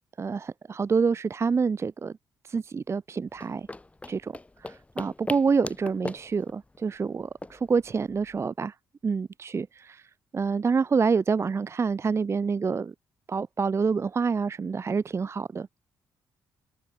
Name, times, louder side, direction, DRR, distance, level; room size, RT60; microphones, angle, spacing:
voice 1, 0.2-2.1 2.4-3.7 4.1-8.7 9.0-10.0 10.3-12.9 13.3-15.7, right 5 dB, 35° right, 0.5 m, -27 dB
sound 1, 3.3-8.5, left 2 dB, 15° left, 0.7 m, -40 dB
supercardioid pair, 60°, 8 cm